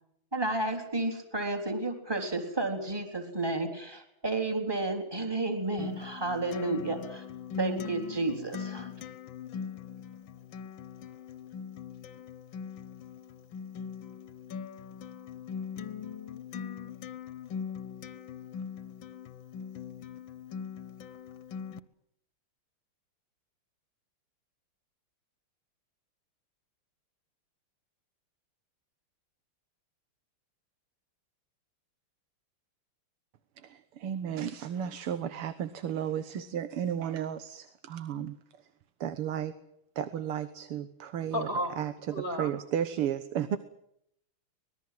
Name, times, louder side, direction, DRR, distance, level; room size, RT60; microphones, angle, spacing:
voice 1, 0.3-7.2 7.6-8.9, right 2 dB, 10° right, 4 dB, 3.7 m, -32 dB
Acoustic guitar, 5.8-21.8, left 7 dB, 65° left, 1.8 m, -41 dB
voice 2, 33.6-38.4 39.0-39.5 40.0-41.5 41.8-43.6, right 9 dB, 85° right, 12 dB, 2.1 m, -33 dB
voice 3, 41.3-41.7 42.1-42.5, equal, 30° right, 6 dB, 5.6 m, -32 dB
25.0 x 21.0 x 7.7 m, 0.74 s
omnidirectional pair, 2.4 m